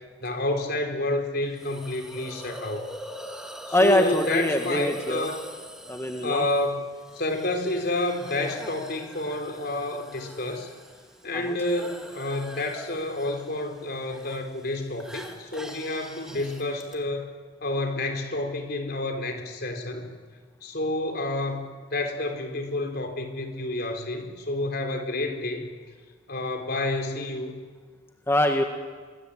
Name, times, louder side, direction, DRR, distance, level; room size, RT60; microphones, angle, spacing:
voice 1, 0.2-2.9 3.7-5.4 6.2-6.9 7.1-10.7 11.2-17.3 17.6-20.1 20.6-25.7 26.3-27.6, left 2 dB, 55° left, 5 dB, 4.1 m, -29 dB
Hiss, 1.6-16.9, equal, 5° right, 2.7 m, -43 dB
voice 2, 3.7-5.3 5.9-6.4 11.3-11.6 28.3-28.6, left 1 dB, 15° left, 3 dB, 1.6 m, -23 dB
25.0 x 25.0 x 8.6 m, 1.5 s
head